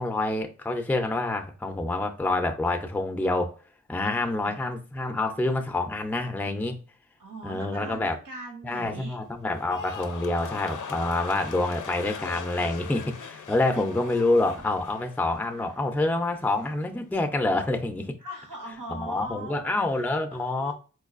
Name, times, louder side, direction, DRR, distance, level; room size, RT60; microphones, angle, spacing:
voice 1, 0.0-3.5 3.9-6.8 7.4-8.2 8.6-18.2 19.0-20.7, left 2 dB, 5° left, 0.4 m, -27 dB
voice 2, 7.2-9.2 13.7-14.7 15.5-15.7 18.2-20.7, right 1 dB, 90° right, 0.9 m, -41 dB
sound 1, 9.5-15.8 16.1-16.6, left 6 dB, 75° left, 0.5 m, -40 dB
4.5 x 2.3 x 2.4 m
wide cardioid pair, 95°, 31 cm